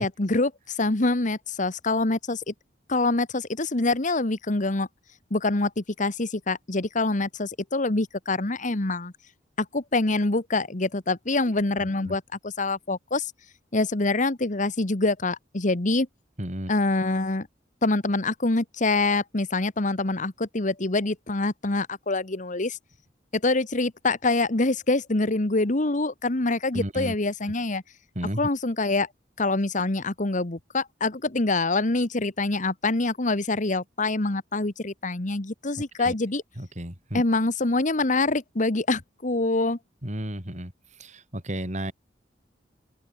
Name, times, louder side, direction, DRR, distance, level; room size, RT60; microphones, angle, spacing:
voice 1, 0.0-2.5 2.9-4.9 5.3-9.1 9.6-13.3 13.7-16.1 16.7-17.5 17.8-22.8 23.3-27.8 28.4-29.1 29.4-36.4 37.1-39.8, left 2 dB, 45° left, 1.5 m, -25 dB
voice 2, 11.8-12.2 16.4-16.7 26.7-27.2 28.1-28.4 36.0-36.1 36.6-37.2 40.0-41.9, right 1 dB, 40° right, 6.0 m, -33 dB
open air
head